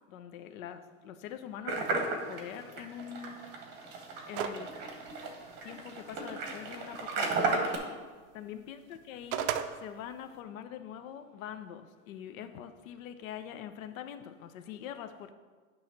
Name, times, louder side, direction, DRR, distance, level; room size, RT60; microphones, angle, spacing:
voice 1, 0.1-3.9 4.3-4.8 5.6-7.7 8.3-15.3, left 9 dB, 75° left, 9 dB, 0.6 m, -44 dB
sound 1, 1.7-7.8, right 3 dB, 25° right, 0.9 m, -34 dB
sound 2, 4.3-4.7 5.1-5.2 8.9-9.7, right 10 dB, 45° right, 0.4 m, -32 dB
8.7 x 3.2 x 5.8 m, 1.4 s
supercardioid pair, 155°, 41 cm